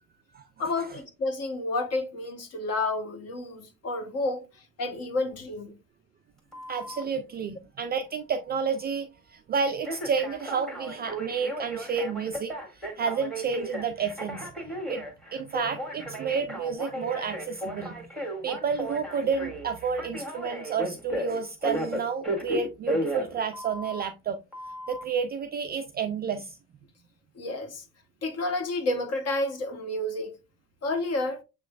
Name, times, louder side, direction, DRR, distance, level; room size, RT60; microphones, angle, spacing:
voice 1, 0.6-5.7 27.3-27.8 28.2-30.4 30.8-31.4, left 2 dB, 35° left, 1.1 m, -30 dB
Telephone, 6.5-7.1 9.8-24.0 24.5-25.0, right 1 dB, ahead, 1.6 m, -35 dB
voice 2, 6.7-14.5 14.9-18.0 18.4-24.4 24.9-26.6, right 5 dB, 25° right, 0.3 m, -30 dB
6.7 x 3.1 x 2.3 m
hypercardioid pair, 80°, 41 cm